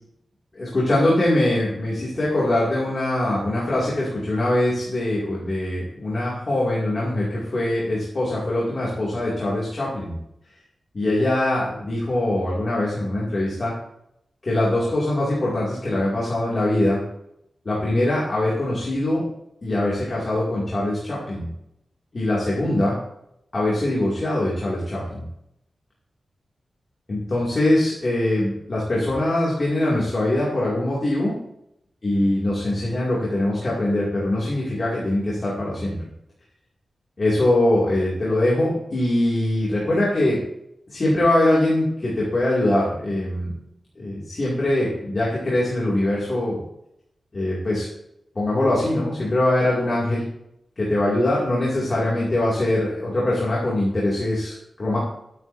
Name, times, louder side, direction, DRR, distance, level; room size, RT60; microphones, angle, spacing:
voice 1, 0.5-10.1 10.9-13.7 14.4-17.0 17.6-19.2 19.6-21.5 22.1-23.0 23.5-25.2 27.1-31.4 32.0-36.0 37.2-40.4 40.9-43.5 44.0-46.6 47.3-47.9 48.3-50.2 50.8-55.0, left 1 dB, 35° left, -6 dB, 2.6 m, -22 dB
12.5 x 9.1 x 2.7 m, 0.79 s
wide cardioid pair, 160°, 0 cm